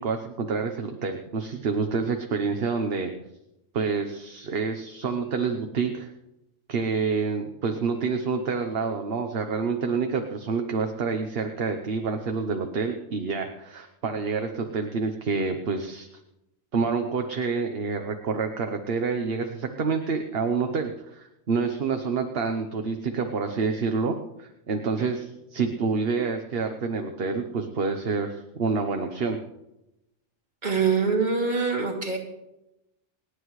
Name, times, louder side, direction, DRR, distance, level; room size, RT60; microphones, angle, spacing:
voice 1, 0.0-3.1 3.7-6.1 6.7-16.1 16.7-29.4, right 4 dB, 50° right, 5 dB, 1.1 m, -28 dB
voice 2, 30.6-32.2, right 5 dB, 35° right, -2 dB, 2.8 m, -24 dB
29.5 x 9.9 x 3.2 m, 0.90 s
omnidirectional pair, 1.3 m